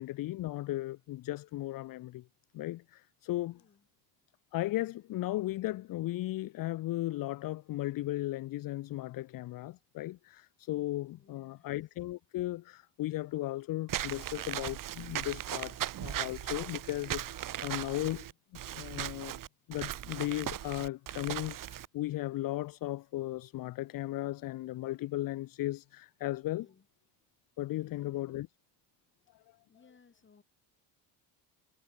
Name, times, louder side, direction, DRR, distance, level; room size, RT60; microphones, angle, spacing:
voice 1, 0.0-2.3 2.5-3.6 4.5-18.3 18.7-19.4 19.7-26.7 27.6-28.5, left 16 dB, 50° left, 0.6 m, -36 dB
voice 2, 3.5-3.9 11.1-11.7 26.5-26.9 27.7-28.5 29.7-30.4, left 5 dB, 25° left, 8.0 m, -63 dB
Walk footsteps / Squeak, 13.9-21.9, right 12 dB, 45° right, 1.2 m, -38 dB
cardioid pair, 130°, 45 cm